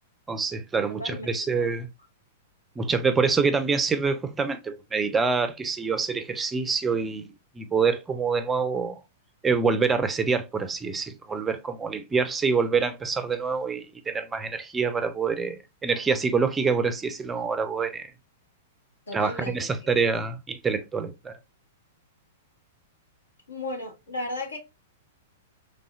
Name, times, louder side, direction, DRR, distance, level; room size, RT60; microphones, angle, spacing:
voice 1, 0.3-1.9 2.8-9.0 9.4-18.1 19.1-21.4, right 5 dB, 15° right, 0.4 m, -26 dB
voice 2, 1.0-1.7 19.1-19.6 23.5-24.6, left 1 dB, 75° left, 1.1 m, -34 dB
3.2 x 2.7 x 2.5 m
figure-of-eight pair, 100°, 0 cm